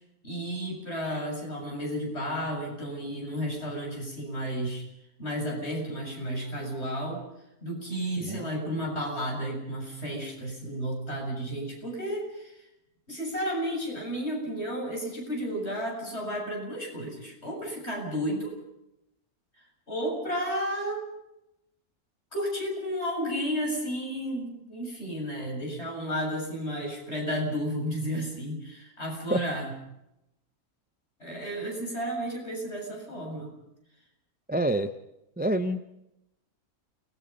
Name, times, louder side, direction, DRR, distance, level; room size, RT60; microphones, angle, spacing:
voice 1, 0.2-4.8 5.2-7.2 7.6-12.7 13.1-18.5 19.9-21.0 22.3-29.7 31.2-33.5, equal, 45° left, 0 dB, 7.9 m, -32 dB
voice 2, 34.5-34.9 35.4-36.0, right 1 dB, 10° right, 10 dB, 0.6 m, -27 dB
29.5 x 20.0 x 5.5 m, 0.85 s
omnidirectional pair, 1.5 m